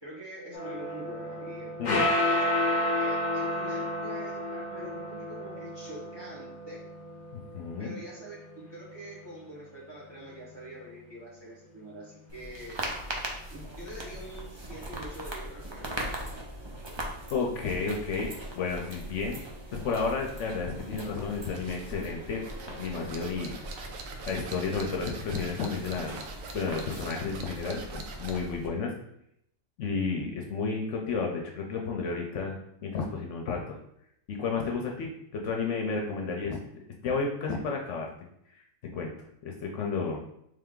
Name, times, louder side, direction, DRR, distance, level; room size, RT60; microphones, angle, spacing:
voice 1, 0.0-2.4 3.0-6.8 7.8-12.8 13.5-16.4, right 1 dB, 20° right, -6 dB, 1.2 m, -45 dB
sound 1, 0.5-9.1, left 1 dB, 45° left, 0.7 m, -31 dB
voice 2, 7.5-7.9 17.3-18.3 18.6-19.4 19.7-22.4 22.7-23.6 24.2-26.2 26.5-28.9 29.8-33.8 34.3-36.6 37.0-38.1 38.9-39.1 39.4-40.2, left 4 dB, 70° left, 1 dB, 0.9 m, -32 dB
sound 2, 12.3-28.7, right 1 dB, 40° right, 0.4 m, -40 dB
sound 3, 21.5-28.5, right 4 dB, 80° right, 1.0 m, -44 dB
3.5 x 3.3 x 3.7 m, 0.75 s
omnidirectional pair, 1.4 m